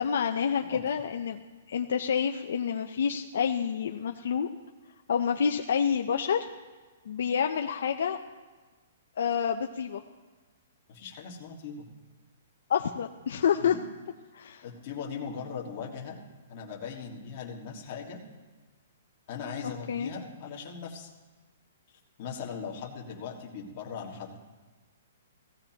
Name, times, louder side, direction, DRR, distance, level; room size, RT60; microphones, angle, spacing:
voice 1, 0.0-1.4 1.7-4.5 5.1-6.5 7.1-8.2 9.2-10.0 12.7-13.8 14.3-14.6 19.9-20.1, left 7 dB, 60° left, 4 dB, 0.6 m, -28 dB
voice 2, 0.6-1.0 10.9-11.9 13.6-13.9 14.6-16.2 16.5-18.2 19.3-21.1 22.2-24.4, left 6 dB, 30° left, -2 dB, 1.7 m, -39 dB
17.0 x 15.0 x 2.9 m, 1.3 s
hypercardioid pair, 180°, 0 cm